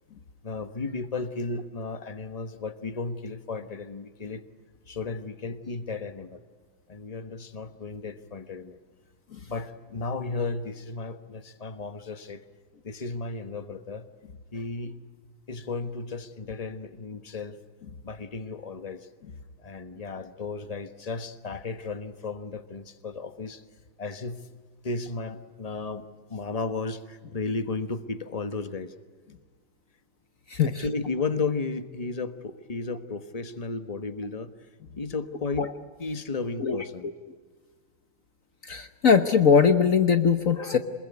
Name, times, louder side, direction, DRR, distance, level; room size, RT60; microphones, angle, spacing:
voice 1, 0.4-4.4 4.9-6.4 6.9-8.8 9.4-12.4 12.8-14.1 14.5-15.0 15.5-17.6 18.0-19.1 19.6-23.6 24.0-24.4 24.8-28.9 30.6-34.5 35.0-35.7 36.0-37.1, left 3 dB, 25° left, 9 dB, 0.9 m, -34 dB
voice 2, 30.5-30.8 35.6-35.7 36.6-36.8 38.7-40.8, left 6 dB, 50° left, 8 dB, 1.2 m, -21 dB
27.0 x 21.5 x 9.5 m, 1.5 s
omnidirectional pair, 2.3 m